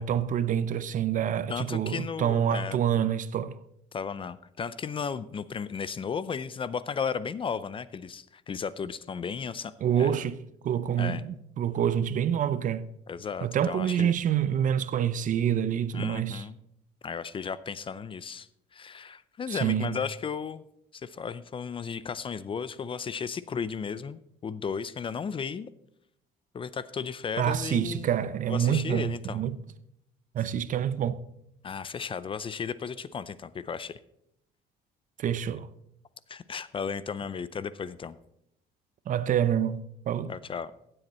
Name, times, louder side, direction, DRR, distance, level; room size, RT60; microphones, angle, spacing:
voice 1, 0.0-3.6 9.8-12.9 13.4-16.4 19.5-20.0 27.4-29.6 30.3-31.2 35.2-35.7 39.1-40.3, right 9 dB, 50° right, 0.6 m, -27 dB
voice 2, 1.5-2.8 3.9-9.7 10.0-10.1 11.0-11.2 13.1-14.1 15.9-16.6 17.0-18.5 18.7-20.6 20.9-25.7 26.5-28.1 28.5-29.4 31.6-34.0 36.3-38.2 40.3-40.7, left 6 dB, 30° left, 0.5 m, -34 dB
15.5 x 7.9 x 4.3 m
cardioid pair, 110°, 17 cm